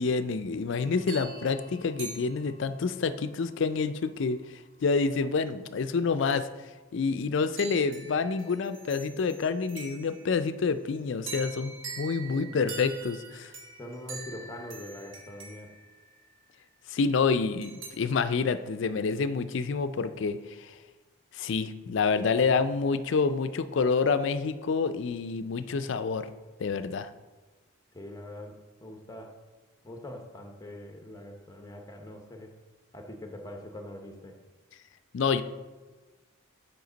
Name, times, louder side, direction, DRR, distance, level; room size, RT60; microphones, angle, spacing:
voice 1, 0.0-4.4 4.8-6.5 6.9-13.5 16.9-20.7 21.3-26.3 26.6-27.1 35.1-35.4, left 4 dB, 60° left, 12 dB, 0.4 m, -28 dB
sound 1, 0.8-3.0 7.6-10.4 11.3-16.6 17.6-17.9, right 4 dB, 65° right, 1.3 m, -44 dB
voice 2, 12.2-12.7 13.8-15.7 27.9-29.3 29.8-32.5 32.9-34.4, left 1 dB, 15° left, 3 dB, 0.8 m, -43 dB
7.7 x 5.0 x 3.9 m, 1.3 s
head